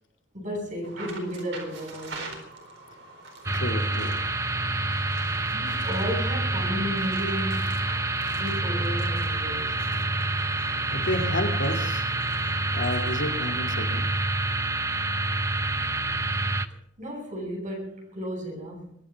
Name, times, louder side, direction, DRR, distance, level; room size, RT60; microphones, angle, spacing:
voice 1, 0.3-2.4 5.5-7.9 8.4-9.8 17.0-19.0, equal, 45° right, -2 dB, 7.4 m, -33 dB
sound 1, 0.8-13.5, right 3 dB, 75° right, 4.3 m, -45 dB
sound 2, 3.4-16.7, right 2 dB, 15° right, 0.7 m, -27 dB
voice 2, 3.5-4.2 10.9-12.1 12.7-14.1, left 1 dB, 80° left, 4 dB, 2.4 m, -30 dB
23.0 x 9.7 x 5.8 m, 0.68 s
head